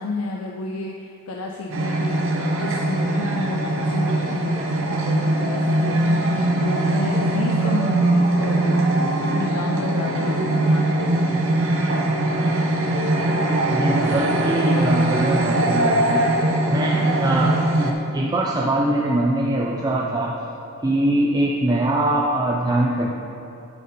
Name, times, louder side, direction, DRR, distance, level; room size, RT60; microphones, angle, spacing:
voice 1, 0.0-8.9 9.2-11.6, left 2 dB, 75° left, 0 dB, 0.5 m, -31 dB
sound 1, 1.7-17.9, right 1 dB, 60° right, 0.9 m, -21 dB
voice 2, 13.7-16.4 16.7-20.4 20.8-23.1, right 1 dB, 20° right, -3 dB, 0.4 m, -23 dB
9.5 x 4.4 x 5.4 m, 2.9 s
head